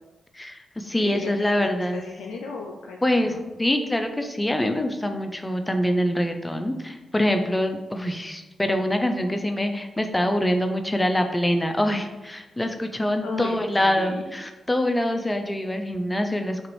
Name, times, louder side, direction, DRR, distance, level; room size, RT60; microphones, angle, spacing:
voice 1, 0.3-2.0 3.0-3.3 3.6-16.7, left 1 dB, 15° left, 6 dB, 0.5 m, -25 dB
voice 2, 1.0-3.4 13.2-14.2, left 4 dB, 90° left, 0 dB, 0.4 m, -35 dB
5.9 x 2.5 x 3.1 m, 1.1 s
supercardioid pair, 45°, 0 cm